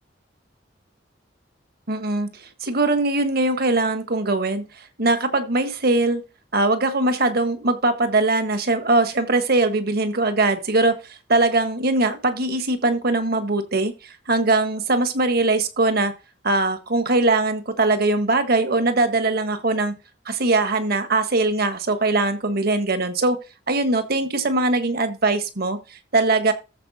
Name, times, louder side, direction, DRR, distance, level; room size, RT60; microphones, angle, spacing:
voice 1, 1.9-4.6 5.0-6.2 6.5-16.1 16.4-19.9 20.2-23.4 23.7-26.5, right 2 dB, 55° right, 1.5 m, -21 dB
14.0 x 4.8 x 4.2 m
head